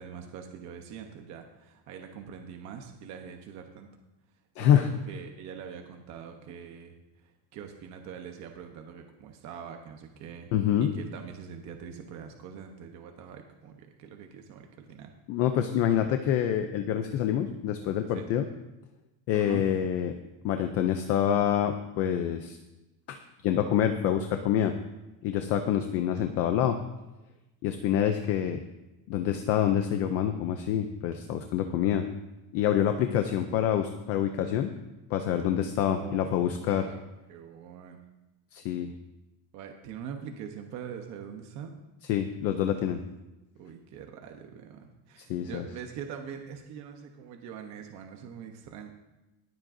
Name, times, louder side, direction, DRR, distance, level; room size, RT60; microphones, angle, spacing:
voice 1, 0.0-3.9 4.6-6.9 7.5-10.5 10.8-15.1 18.1-18.3 19.3-19.7 25.5-25.6 35.6-37.0 37.3-38.0 39.5-41.7 43.5-48.9, right 7 dB, 40° right, 4 dB, 0.9 m, -43 dB
voice 2, 4.6-4.9 10.5-10.9 15.3-18.5 19.3-20.1 20.4-22.6 23.1-23.2 23.4-24.7 25.2-26.8 27.6-28.6 29.1-32.0 32.5-34.7 35.1-36.8 38.5-38.9 42.1-43.0 45.3-45.6, left 10 dB, 35° left, 7 dB, 0.4 m, -26 dB
22.5 x 7.5 x 2.6 m, 1.0 s
cardioid pair, 180°, 46 cm